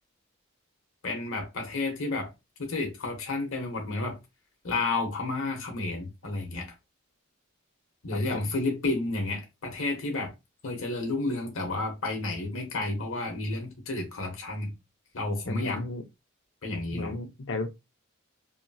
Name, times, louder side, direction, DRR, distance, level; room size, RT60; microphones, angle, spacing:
voice 1, 1.0-2.3 2.6-4.2 4.6-6.7 8.0-10.3 10.6-14.7 15.1-15.8 16.6-17.1, left 2 dB, 80° left, 0.9 m, -31 dB
voice 2, 8.1-8.5 15.5-16.0 16.9-17.7, left 3 dB, 60° left, 0.6 m, -34 dB
2.9 x 2.6 x 2.3 m
head